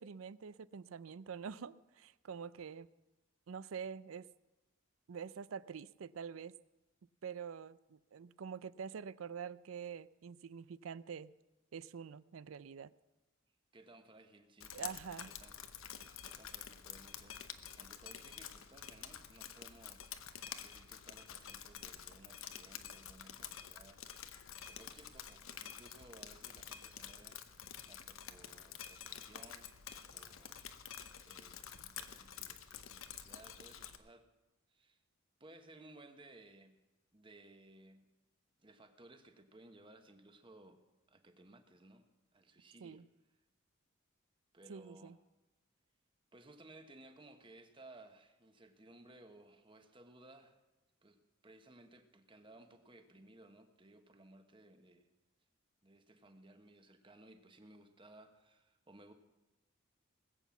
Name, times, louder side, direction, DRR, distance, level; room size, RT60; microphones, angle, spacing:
voice 1, 0.0-2.9 3.5-4.3 5.1-6.5 7.2-11.3 11.7-12.9 14.7-15.3 31.8-31.9 42.8-43.1 44.7-45.2, right 7 dB, 80° right, 18 dB, 0.4 m, -46 dB
voice 2, 13.7-15.6 16.2-24.0 24.6-30.6 31.2-34.3 34.7-35.0 35.4-36.8 37.1-38.1 38.6-40.8 41.1-42.0 42.3-43.0 44.5-45.2 46.3-50.6 51.0-55.1 55.8-59.1, right 2 dB, 25° right, 7 dB, 1.2 m, -60 dB
Drip, 14.6-34.0, left 9 dB, 80° left, 0.9 m, -49 dB
20.0 x 8.0 x 7.2 m, 1.0 s
head